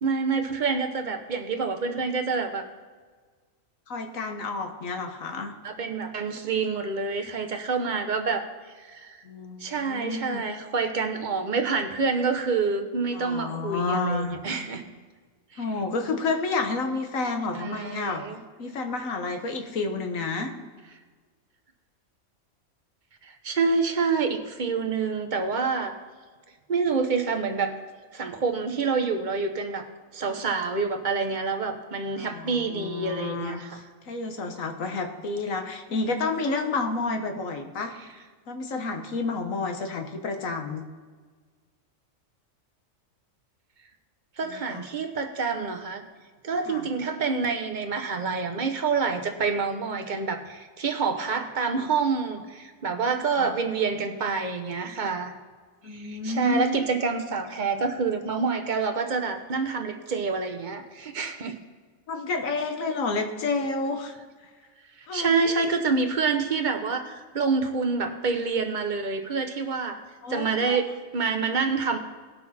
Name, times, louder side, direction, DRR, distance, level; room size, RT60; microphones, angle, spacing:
voice 1, 0.0-2.6 5.6-9.2 9.6-14.8 15.5-15.6 17.5-18.4 23.2-26.0 26.7-27.7 28.1-29.9 30.1-33.8 44.4-46.0 46.4-55.3 55.8-61.6 65.0-70.0 70.3-70.9 71.1-72.0, right 4 dB, 40° right, 6 dB, 1.0 m, -27 dB
voice 2, 3.9-5.5 9.2-10.4 13.1-14.4 15.6-18.2 18.6-20.5 32.2-37.9 38.5-40.8 44.5-44.8 46.7-46.9 52.9-53.0 53.4-53.5 55.8-56.8 62.1-64.1 65.1-65.7 70.2-70.8, left 3 dB, 80° left, 5 dB, 1.5 m, -30 dB
18.0 x 6.2 x 4.2 m, 1.5 s
omnidirectional pair, 1.4 m